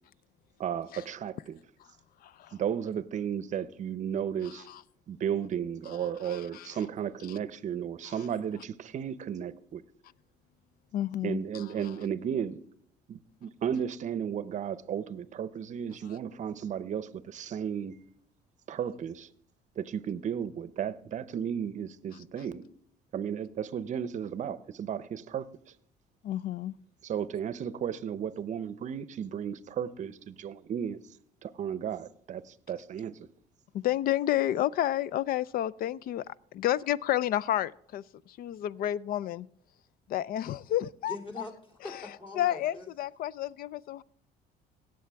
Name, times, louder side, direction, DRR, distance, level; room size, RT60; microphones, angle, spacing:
voice 1, 0.6-1.6 2.5-4.7 5.1-9.8 11.2-12.6 13.1-18.0 18.7-19.3 19.8-22.7 23.1-25.5 27.0-31.0 31.4-33.2, right 8 dB, 45° right, 0.6 m, -34 dB
voice 2, 2.2-2.5 4.7-4.8 6.2-6.8 8.1-8.2 10.9-11.6 26.2-26.7 33.7-39.5 40.1-41.2 42.4-44.0, left 13 dB, 60° left, 0.4 m, -30 dB
voice 3, 41.1-42.9, left 2 dB, 30° left, 2.9 m, -42 dB
18.0 x 7.6 x 3.5 m
cardioid pair, 110°, 17 cm